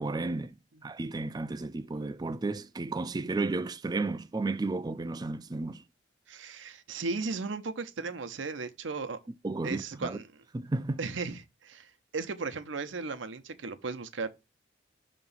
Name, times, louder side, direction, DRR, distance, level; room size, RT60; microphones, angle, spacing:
voice 1, 0.0-0.5 0.8-5.8 9.4-10.2 10.5-11.0, right 3 dB, 20° right, 0.3 m, -33 dB
voice 2, 6.3-9.2 9.6-10.4 11.0-14.3, right 4 dB, 75° right, 0.7 m, -36 dB
5.8 x 3.0 x 5.4 m
head